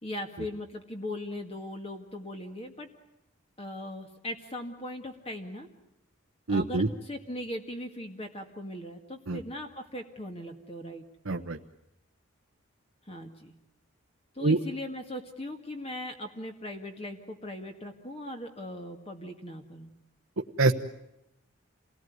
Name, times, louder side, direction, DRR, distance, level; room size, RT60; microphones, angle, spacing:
voice 1, 0.0-2.9 3.6-5.7 6.5-11.0 13.1-13.5 14.3-19.9, left 1 dB, 30° left, 4 dB, 2.0 m, -39 dB
voice 2, 6.5-6.9 9.3-9.4 11.2-11.6 14.4-14.6 20.6-20.7, right 3 dB, 85° right, 4 dB, 1.2 m, -24 dB
28.5 x 19.0 x 9.5 m, 0.86 s
head